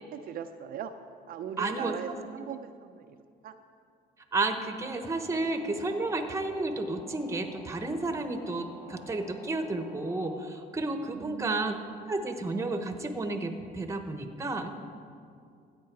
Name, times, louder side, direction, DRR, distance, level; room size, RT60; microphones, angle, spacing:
voice 1, 0.1-0.9 1.3-3.2 3.4-3.5 11.1-11.8, right 8 dB, 60° right, 6 dB, 0.5 m, -39 dB
voice 2, 1.6-2.0 4.3-11.8 12.1-14.8, right 2 dB, 15° right, 7 dB, 1.0 m, -32 dB
sound 1, 5.0-10.3, left 2 dB, 15° left, 1.9 m, -50 dB
14.0 x 8.6 x 4.7 m, 2.4 s
cardioid pair, 110°, 17 cm